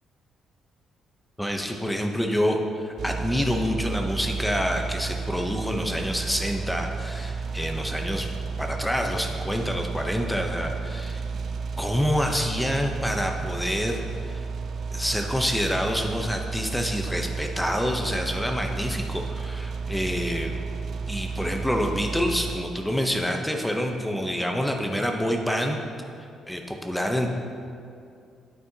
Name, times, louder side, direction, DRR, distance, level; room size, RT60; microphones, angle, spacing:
voice 1, 1.4-8.3 8.6-11.2 11.8-14.0 14.3-14.5 14.9-20.5 21.1-25.8 26.5-27.3, equal, 5° left, 3 dB, 0.7 m, -27 dB
sound 1, 3.0-22.6, right 4 dB, 60° right, 0.4 m, -32 dB
9.5 x 8.4 x 2.8 m, 2.4 s
cardioid pair, 90°, 0 cm